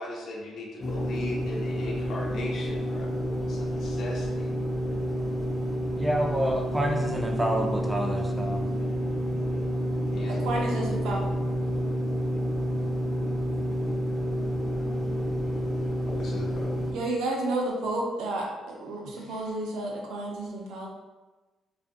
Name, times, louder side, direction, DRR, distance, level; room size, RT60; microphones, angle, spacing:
voice 1, 0.0-3.1 3.5-4.5 10.1-10.7 16.1-16.8 19.1-19.5, left 2 dB, 65° left, -2 dB, 0.5 m, -39 dB
sound 1, 0.8-16.9, equal, 30° left, 0.7 m, -29 dB
voice 2, 6.0-8.6, right 1 dB, 10° right, 1 dB, 0.4 m, -28 dB
voice 3, 10.3-11.2 16.9-20.9, right 2 dB, 85° right, -1 dB, 0.5 m, -31 dB
2.5 x 2.4 x 2.4 m, 1.2 s
cardioid pair, 90°, 0 cm